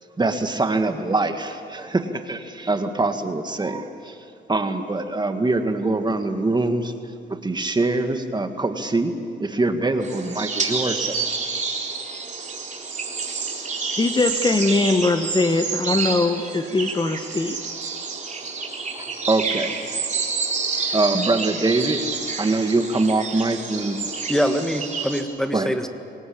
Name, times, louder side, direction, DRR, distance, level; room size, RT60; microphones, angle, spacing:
voice 1, 0.2-4.2 4.5-6.9 7.3-9.1 9.4-11.3 18.9-19.8 20.9-22.0 22.4-24.0 25.5-25.7, right 2 dB, 20° right, 6 dB, 1.9 m, -23 dB
sound 1, 10.0-25.2, right 4 dB, 40° right, 3.8 m, -29 dB
voice 2, 14.0-17.6, left 3 dB, 20° left, 7 dB, 1.2 m, -21 dB
voice 3, 24.3-25.9, equal, 5° left, 7 dB, 1.6 m, -24 dB
23.5 x 18.5 x 8.7 m, 2.5 s
cardioid pair, 90°, 20 cm